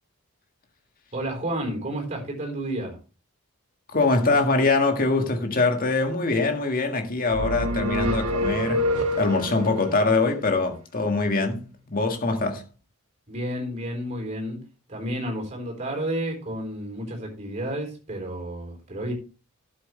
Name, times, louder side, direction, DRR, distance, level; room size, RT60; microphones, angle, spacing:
voice 1, 1.1-3.0 13.3-14.6 14.9-19.1, right 1 dB, 30° right, 4.2 m, -31 dB
voice 2, 3.9-12.6, left 3 dB, 40° left, 1.8 m, -23 dB
sound 1, 7.3-9.7, equal, 90° right, 1.4 m, -26 dB
12.5 x 7.9 x 3.3 m
head